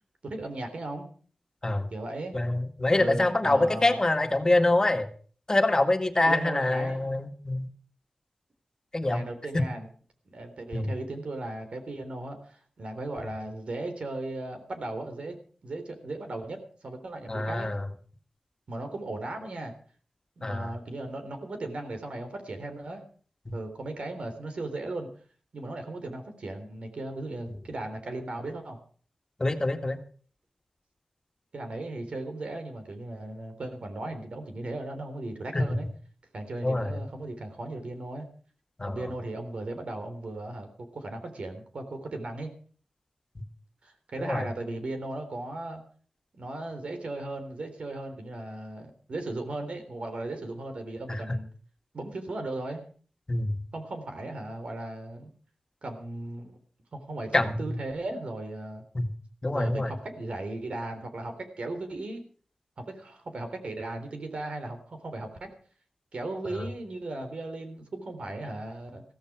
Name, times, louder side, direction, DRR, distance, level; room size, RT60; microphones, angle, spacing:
voice 1, 0.2-1.1 1.9-2.4 2.9-4.0 6.2-7.1 9.0-9.9 10.3-15.4 15.6-17.7 18.7-19.7 20.4-23.1 23.5-25.1 25.5-28.8 31.5-35.9 36.3-38.3 38.9-42.5 43.8-45.8 46.3-51.5 51.9-52.8 53.7-55.3 55.8-56.5 56.9-58.8 59.5-62.2 62.8-65.5 66.1-69.0, right 2 dB, 70° right, 6 dB, 3.6 m, -37 dB
voice 2, 2.3-5.1 5.5-7.7 8.9-9.2 9.5-9.6 10.7-10.9 17.3-17.9 20.4-20.7 23.5-23.6 29.4-30.0 35.5-35.7 36.6-37.0 38.8-39.1 44.2-44.5 51.1-51.2 53.3-53.6 57.3-57.8 58.9-59.1 59.4-59.9 66.6-66.7, left 2 dB, 30° left, 6 dB, 1.9 m, -25 dB
15.5 x 14.0 x 4.9 m, 0.44 s
wide cardioid pair, 65°, 2 cm